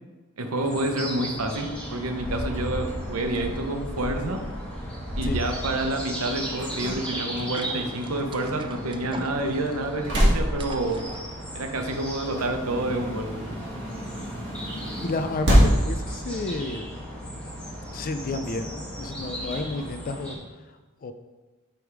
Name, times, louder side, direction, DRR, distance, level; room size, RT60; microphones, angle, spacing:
voice 1, 0.4-4.4 5.2-11.0 11.5-13.4, right 2 dB, 85° right, 4 dB, 0.9 m, -28 dB
sound 1, 0.6-20.4, equal, 5° left, 1.5 m, -38 dB
sound 2, 1.3-20.0, equal, 55° right, 1.9 m, -30 dB
sound 3, 6.8-12.0, right 2 dB, 20° right, 0.4 m, -43 dB
voice 2, 15.0-16.8 17.9-20.4 21.0-21.1, left 2 dB, 40° left, 8 dB, 0.4 m, -31 dB
8.0 x 3.5 x 4.8 m, 1.2 s
head